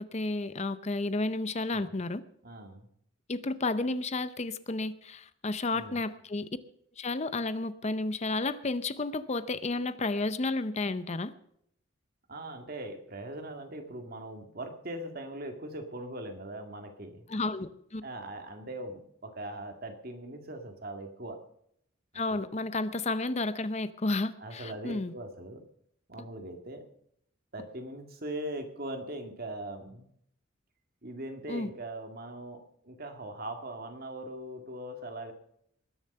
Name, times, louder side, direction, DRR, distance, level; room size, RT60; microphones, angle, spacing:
voice 1, 0.1-2.2 3.3-6.5 7.0-11.3 17.3-18.0 22.1-25.1 31.5-31.7, left 2 dB, 35° left, 13 dB, 0.6 m, -32 dB
voice 2, 2.4-2.9 5.7-6.0 12.3-17.3 18.0-21.4 22.3-22.4 24.4-25.6 26.1-26.8 27.5-30.1 31.0-32.6 32.8-35.3, right 1 dB, 50° right, 5 dB, 2.2 m, -40 dB
20.0 x 7.1 x 6.7 m, 0.70 s
head